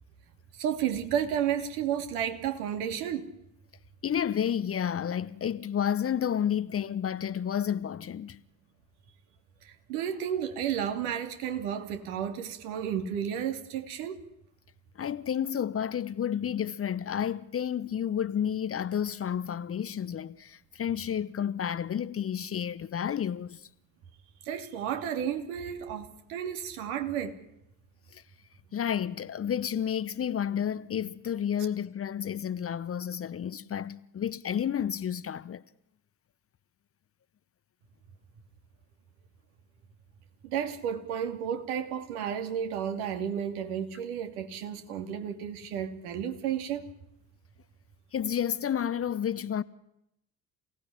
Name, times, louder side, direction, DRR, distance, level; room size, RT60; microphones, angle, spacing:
voice 1, 0.5-3.3 9.6-14.2 24.4-27.4 40.4-46.9, right 9 dB, 65° right, 2.8 m, -32 dB
voice 2, 4.0-8.4 15.0-23.7 28.1-28.2 28.7-35.6 48.1-49.6, left 9 dB, 30° left, 0.9 m, -31 dB
28.0 x 17.5 x 9.9 m
figure-of-eight pair, 55°, 47 cm